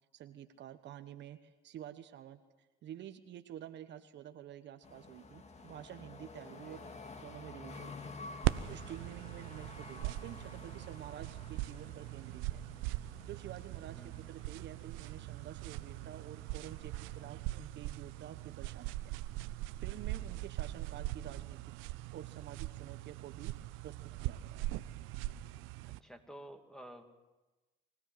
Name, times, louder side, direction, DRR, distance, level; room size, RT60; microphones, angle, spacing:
voice 1, 0.1-6.9 7.2-8.1 8.6-12.6 13.2-19.2 19.8-21.7 22.1-24.7, right 11 dB, 60° right, 9 dB, 1.2 m, -49 dB
sound 1, 4.8-17.3, left 3 dB, 30° left, 2.1 m, -52 dB
sound 2, 8.4-26.0, right 17 dB, 75° right, 0.7 m, -41 dB
voice 2, 13.9-14.2 25.8-27.0, right 1 dB, 5° left, 5 dB, 2.6 m, -51 dB
24.0 x 16.5 x 7.7 m, 1.1 s
supercardioid pair, 70°, 21 cm